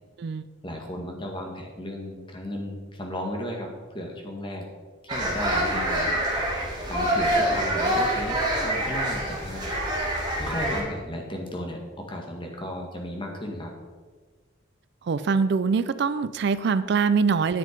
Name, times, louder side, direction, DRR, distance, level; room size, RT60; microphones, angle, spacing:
voice 1, 0.6-4.6 5.0-6.1 6.9-9.7 10.4-13.7, left 1 dB, 25° left, 1 dB, 1.7 m, -35 dB
sound 1, 5.1-10.8, right 1 dB, 20° right, 3.7 m, -26 dB
voice 2, 15.1-17.6, right 5 dB, 60° right, 14 dB, 0.4 m, -23 dB
10.0 x 7.6 x 5.1 m, 1.4 s
head